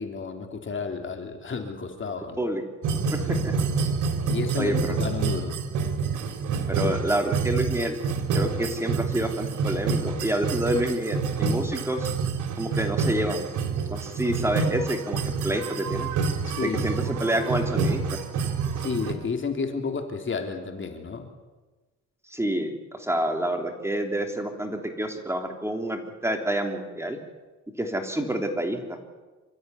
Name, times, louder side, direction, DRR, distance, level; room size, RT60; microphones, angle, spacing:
voice 1, 0.0-2.4 3.2-3.4 4.2-5.6 16.4-16.8 18.8-21.3, left 5 dB, 40° left, 4 dB, 3.4 m, -31 dB
sound 1, 2.8-19.1, right 5 dB, 85° right, 2.9 m, -28 dB
voice 2, 3.1-3.5 4.6-5.0 6.7-8.0 8.3-12.1 12.6-13.5 13.9-16.1 16.6-18.2 22.3-27.2 27.8-28.8, right 1 dB, 10° right, 4 dB, 3.4 m, -28 dB
27.0 x 14.0 x 9.8 m, 1.2 s
cardioid pair, 90°, 30 cm